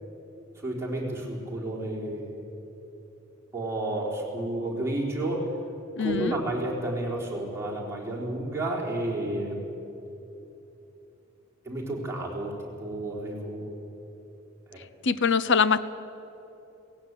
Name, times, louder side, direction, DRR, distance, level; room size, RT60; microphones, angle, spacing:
voice 1, 0.6-2.4 3.5-5.5 6.0-9.7 11.6-12.5 12.8-13.8 14.7-14.9, right 1 dB, 15° right, -3 dB, 4.0 m, -31 dB
voice 2, 6.0-6.3 15.0-15.8, left 5 dB, 60° left, 14 dB, 0.8 m, -23 dB
17.0 x 16.0 x 9.8 m, 3.0 s
head